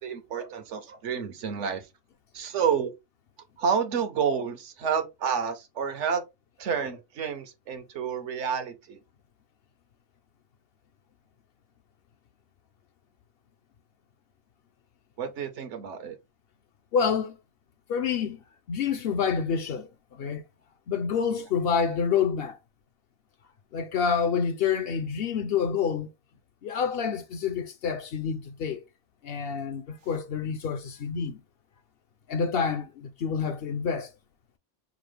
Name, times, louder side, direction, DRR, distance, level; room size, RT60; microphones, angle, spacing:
voice 1, 0.0-1.9 2.3-2.9 3.6-6.2 6.6-9.0 15.2-16.2, right 7 dB, 80° right, 1.1 m, -29 dB
voice 2, 16.9-17.4 17.9-18.4 18.7-20.4 20.9-22.6 23.7-26.1 26.6-28.8 29.2-31.4 32.3-34.1, left 6 dB, 60° left, 0.7 m, -28 dB
4.9 x 2.0 x 3.3 m
omnidirectional pair, 1.2 m